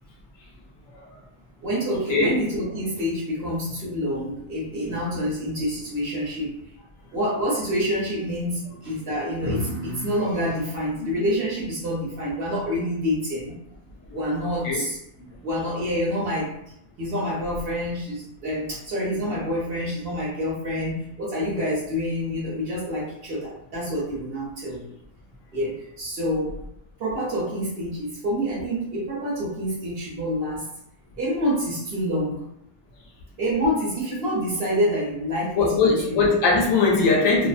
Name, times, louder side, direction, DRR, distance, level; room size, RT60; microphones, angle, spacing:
voice 1, 1.6-6.5 7.1-13.6 14.1-15.0 15.4-16.5 17.0-24.8 25.5-26.6 27.0-30.7 31.2-32.4 33.4-36.2, equal, 45° right, -5 dB, 0.9 m, -27 dB
voice 2, 35.6-37.5, left 4 dB, 70° left, -1 dB, 0.9 m, -21 dB
2.6 x 2.1 x 2.4 m, 0.77 s
omnidirectional pair, 1.6 m